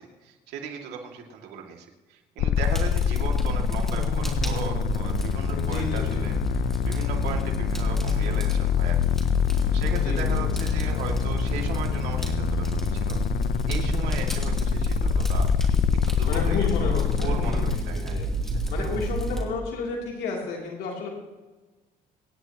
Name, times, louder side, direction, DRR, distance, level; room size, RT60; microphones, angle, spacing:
voice 1, 0.0-9.0 9.7-13.2 13.7-15.5 16.0-18.2 18.4-18.9, right 6 dB, 90° right, 2 dB, 2.3 m, -37 dB
sound 1, 2.4-17.8, left 11 dB, 65° left, 0.7 m, -26 dB
Fire, 2.5-19.4, right 1 dB, ahead, 2.9 m, -29 dB
voice 2, 5.5-6.3 9.9-10.4 16.2-18.3 18.7-21.1, left 4 dB, 80° left, -2 dB, 3.0 m, -32 dB
25.0 x 10.5 x 2.9 m, 1.2 s
cardioid pair, 110°, 17 cm